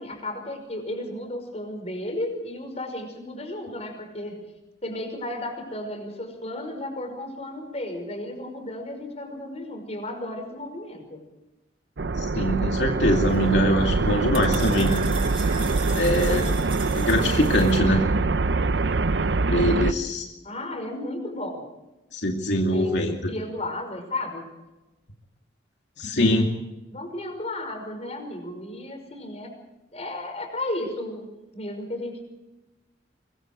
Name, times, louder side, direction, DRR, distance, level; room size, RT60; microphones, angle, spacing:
voice 1, 0.0-4.5 4.8-11.2 20.4-21.7 22.7-24.5 26.9-29.6 29.9-32.2, left 1 dB, 35° left, 5 dB, 5.5 m, -34 dB
sound 1, 12.0-19.9, right 3 dB, 75° right, 0.7 m, -24 dB
voice 2, 12.2-15.0 15.9-16.5 17.0-18.0 19.5-20.2 22.1-23.2 26.0-26.5, equal, 80° left, 1 dB, 2.5 m, -23 dB
sound 2, 13.2-17.8, right 5 dB, 30° right, 5.7 m, -38 dB
24.5 x 22.5 x 4.7 m, 1.0 s
head